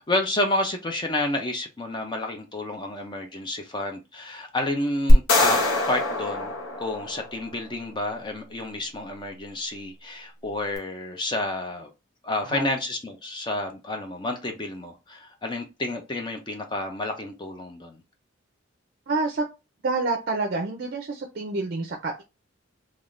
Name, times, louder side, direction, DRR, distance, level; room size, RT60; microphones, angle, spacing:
voice 1, 0.1-5.6 5.9-11.9 12.2-18.0, left 2 dB, 20° left, 0.4 m, -30 dB
sound 1, 5.1-7.5, left 1 dB, 70° left, 0.8 m, -21 dB
voice 2, 19.1-19.4 19.8-22.2, right 3 dB, 50° right, 0.5 m, -28 dB
3.4 x 2.3 x 2.4 m
head